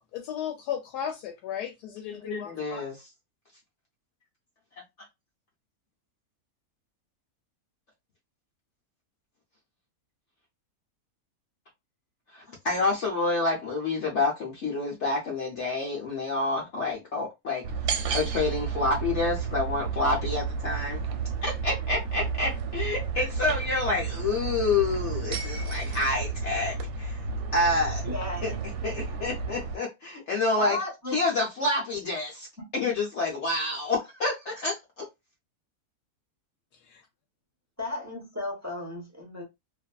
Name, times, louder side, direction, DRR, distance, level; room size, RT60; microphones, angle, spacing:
voice 1, 0.1-2.8 36.9-37.0, left 9 dB, 85° left, 1.1 m, -35 dB
voice 2, 2.1-3.0 12.3-17.6 18.1-21.0 21.4-27.2 27.5-28.0 28.4-28.5 28.8-30.8 31.1-32.5 32.7-35.1, left 3 dB, 55° left, 0.9 m, -28 dB
sound 1, 17.6-29.8, right 5 dB, 75° right, 1.0 m, -32 dB
voice 3, 28.0-28.6 30.6-31.2 32.6-32.7 37.8-39.4, left 2 dB, 15° right, 0.7 m, -34 dB
2.5 x 2.5 x 2.3 m
omnidirectional pair, 1.7 m